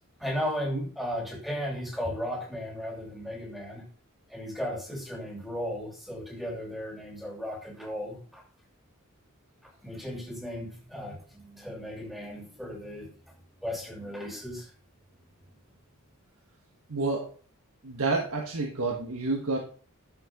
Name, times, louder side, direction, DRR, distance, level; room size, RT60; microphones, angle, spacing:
voice 1, 0.2-3.8 4.3-8.4 9.6-13.1 13.6-14.7, equal, ahead, 0 dB, 2.6 m, -35 dB
voice 2, 16.9-17.3 17.8-19.6, right 3 dB, 80° right, 1 dB, 1.4 m, -29 dB
11.5 x 6.7 x 3.6 m, 0.41 s
head